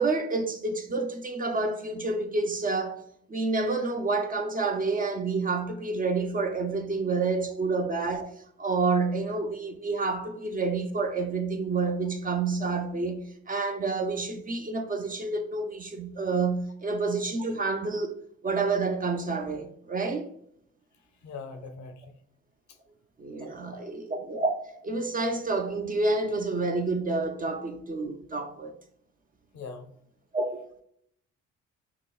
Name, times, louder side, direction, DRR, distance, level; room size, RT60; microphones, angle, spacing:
voice 1, 0.0-8.3 8.6-18.1 18.4-20.2 23.2-28.7 30.3-30.7, right 3 dB, 30° right, 0.7 m, -29 dB
voice 2, 21.2-22.1 22.7-22.8 23.4-23.9 29.5-29.9, left 4 dB, 70° left, 0.8 m, -42 dB
5.7 x 2.3 x 2.4 m
cardioid pair, 90°, 30 cm